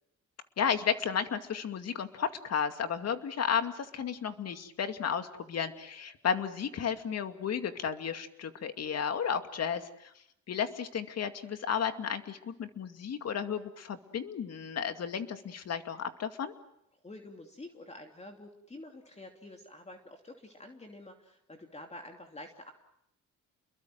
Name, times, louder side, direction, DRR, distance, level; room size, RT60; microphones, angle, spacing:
voice 1, 0.6-10.1 10.5-16.5, left 7 dB, 55° left, 8 dB, 2.4 m, -33 dB
voice 2, 17.0-22.7, left 1 dB, 20° left, 3 dB, 3.0 m, -48 dB
30.0 x 22.0 x 7.8 m, 0.78 s
cardioid pair, 90°, 30 cm